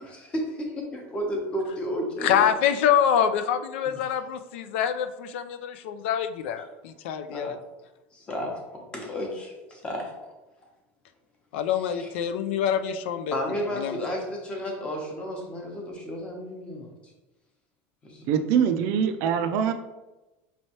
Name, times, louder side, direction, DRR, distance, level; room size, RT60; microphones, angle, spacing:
voice 1, 0.0-2.4 3.9-4.0 7.3-7.6 8.1-10.1 12.0-12.1 13.3-16.9 18.0-18.3, equal, 20° left, 1 dB, 0.8 m, -32 dB
voice 2, 2.2-7.6 11.5-13.4 13.7-14.0, left 9 dB, 85° left, 9 dB, 0.4 m, -25 dB
voice 3, 18.3-19.7, right 8 dB, 50° right, 8 dB, 0.3 m, -23 dB
5.4 x 3.1 x 2.8 m, 1.1 s
cardioid pair, 170°, 6 cm